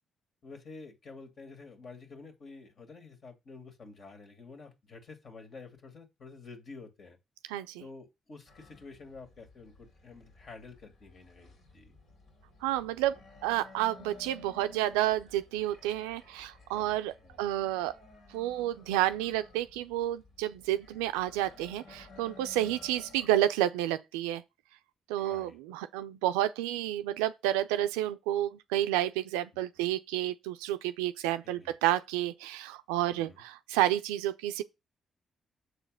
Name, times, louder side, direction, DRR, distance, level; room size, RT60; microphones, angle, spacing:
voice 1, 0.4-7.2 7.8-12.0 16.7-17.0 17.2-17.4 22.6-22.8 25.2-25.6 31.4-31.7 33.1-33.4, left 4 dB, 55° left, 2.3 m, -49 dB
voice 2, 7.5-7.8 12.6-13.2 13.4-17.9 18.3-24.4 25.1-34.6, right 13 dB, 85° right, 0.4 m, -30 dB
sound 1, 8.5-23.3, left 3 dB, 70° left, 2.9 m, -55 dB
6.8 x 4.1 x 5.7 m
hypercardioid pair, 45°, 0 cm